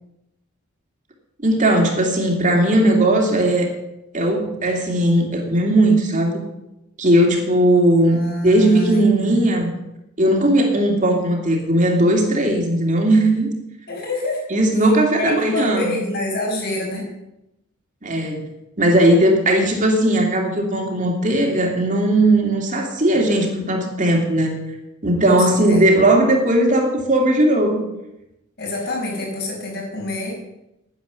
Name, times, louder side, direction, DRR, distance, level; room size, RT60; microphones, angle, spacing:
voice 1, 1.4-3.7 4.1-6.4 7.0-8.2 8.4-9.7 10.2-13.5 14.5-15.9 18.0-18.4 18.8-24.6 25.0-27.8, right 1 dB, 35° right, 1 dB, 2.5 m, -17 dB
voice 2, 8.0-9.4 13.9-14.4 15.2-17.1 25.3-25.9 28.6-30.4, left 2 dB, 50° left, -2 dB, 5.4 m, -26 dB
11.0 x 9.8 x 6.9 m, 0.89 s
head